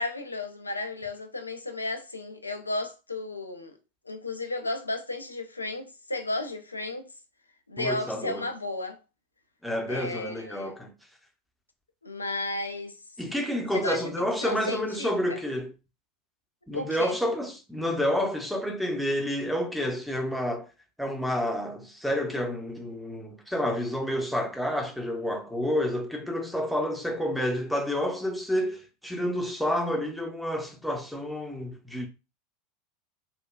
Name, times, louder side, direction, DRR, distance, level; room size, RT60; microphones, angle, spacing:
voice 1, 0.0-3.7 4.1-7.1 7.7-9.0 9.9-10.7 12.0-12.9 13.7-14.1 14.4-15.4 16.7-17.2, left 2 dB, 85° left, 0.4 m, -33 dB
voice 2, 7.8-8.5 9.6-10.9 13.2-15.7 16.7-20.7 21.0-32.1, equal, ahead, 0.6 m, -29 dB
3.2 x 2.2 x 2.2 m
figure-of-eight pair, 80°, 0 cm